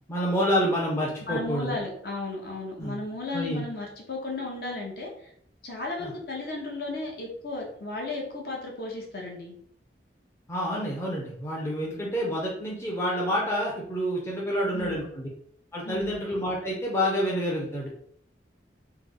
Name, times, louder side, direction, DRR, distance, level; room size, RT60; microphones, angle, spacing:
voice 1, 0.1-1.8 2.8-3.0 3.3-3.6 6.0-6.1 10.5-15.3 15.7-17.9, equal, 15° left, -4 dB, 0.5 m, -28 dB
voice 2, 1.3-5.1 5.6-9.6 14.7-15.1 15.8-16.2, left 2 dB, 55° left, 0 dB, 0.8 m, -34 dB
3.2 x 2.0 x 3.6 m, 0.65 s
head